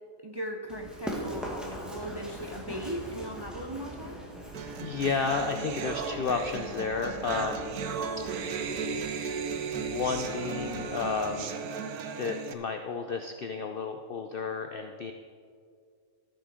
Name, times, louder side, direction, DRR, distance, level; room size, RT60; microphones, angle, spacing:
voice 1, 0.2-4.2, equal, 25° right, 2 dB, 0.5 m, -38 dB
Run, 0.7-11.2, equal, ahead, 1.5 m, -43 dB
sound 1, 4.5-12.5, right 5 dB, 90° right, 1.2 m, -35 dB
voice 2, 4.7-7.7 8.2-8.3 9.7-11.6 12.2-15.1, left 5 dB, 65° left, 6 dB, 0.5 m, -32 dB
13.5 x 7.4 x 5.0 m, 2.2 s
omnidirectional pair, 1.5 m